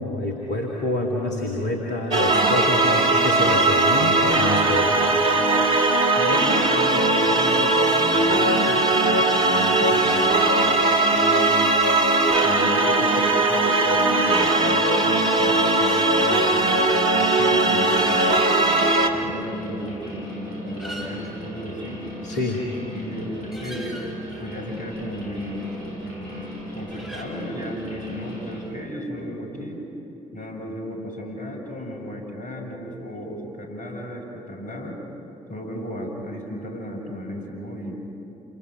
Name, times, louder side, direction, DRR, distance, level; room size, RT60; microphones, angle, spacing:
voice 1, 0.0-5.0 22.2-22.6, left 2 dB, 65° left, 0 dB, 2.3 m, -27 dB
sound 1, 2.1-19.1, right 2 dB, 75° right, 1.5 m, -19 dB
voice 2, 6.1-12.0 12.4-18.4 19.1-22.1 22.9-24.0 24.4-25.7 26.0-29.8 30.3-35.0 35.5-38.0, equal, 50° left, 1 dB, 6.2 m, -34 dB
sound 2, 18.3-28.5, equal, 85° left, 7.5 m, -37 dB
sound 3, 20.8-26.2 26.4-27.2, right 1 dB, ahead, 5.9 m, -43 dB
28.5 x 23.5 x 6.3 m, 3.0 s
figure-of-eight pair, 40°, 18 cm